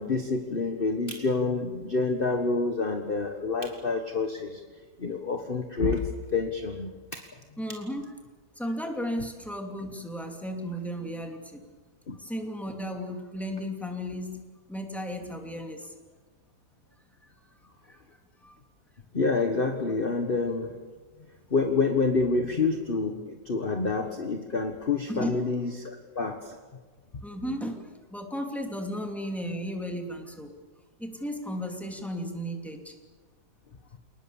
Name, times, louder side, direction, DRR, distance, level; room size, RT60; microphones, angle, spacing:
voice 1, 0.0-4.6 5.0-7.3 12.1-12.2 19.1-20.7 21.5-26.5, left 4 dB, 35° left, 5 dB, 1.5 m, -28 dB
voice 2, 7.6-8.1 8.6-11.6 12.2-15.9 17.2-17.3 17.9-18.0 18.4-18.6 25.1-25.4 27.2-27.8 28.1-30.5 31.0-32.9, equal, ahead, 3 dB, 2.8 m, -34 dB
28.5 x 19.5 x 7.2 m, 1.4 s
omnidirectional pair, 1.8 m